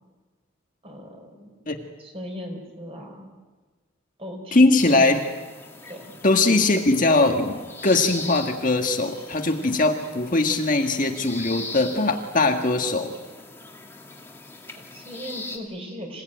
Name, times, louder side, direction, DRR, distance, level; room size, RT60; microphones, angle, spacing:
voice 1, 0.8-1.5 2.0-3.3 4.2-5.1 5.8-6.1 14.7-16.2, equal, 30° right, 3 dB, 4.6 m, -38 dB
voice 2, 4.5-5.2 6.2-13.1, left 2 dB, 40° left, 4 dB, 1.7 m, -21 dB
sound 1, 4.8-15.6, left 3 dB, 10° left, 2.1 m, -41 dB
26.5 x 17.5 x 9.2 m, 1.3 s
head